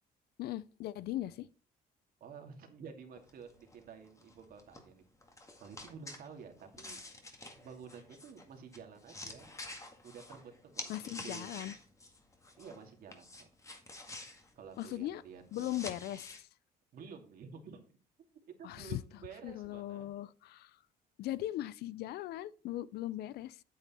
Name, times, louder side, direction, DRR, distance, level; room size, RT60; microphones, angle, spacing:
voice 1, 0.4-1.5 10.9-11.7 14.8-15.2 15.5-16.5 18.6-19.0 19.4-20.8 21.2-23.6, left 14 dB, 70° left, 0.5 m, -39 dB
voice 2, 2.2-5.0 5.6-7.0 7.6-9.5 10.0-10.9 11.2-11.6 12.6-13.5 14.5-15.7 16.9-18.0 18.5-20.1, right 6 dB, 60° right, 2.4 m, -51 dB
sound 1, 3.2-12.8 13.1-16.4, left 2 dB, 20° left, 1.9 m, -49 dB
8.7 x 8.4 x 4.3 m
cardioid pair, 110°, 17 cm